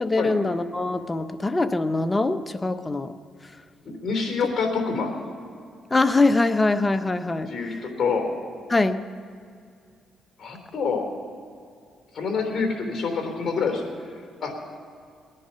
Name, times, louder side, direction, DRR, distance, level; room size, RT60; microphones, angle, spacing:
voice 1, 0.0-3.1 5.9-7.5 8.7-9.1, left 2 dB, 20° left, 10 dB, 0.8 m, -23 dB
voice 2, 3.9-5.1 7.5-8.3 10.4-11.0 12.1-13.8 14.4-14.5, left 5 dB, 45° left, 3 dB, 3.5 m, -26 dB
21.5 x 10.0 x 5.6 m, 2.3 s
cardioid pair, 90°, 0 cm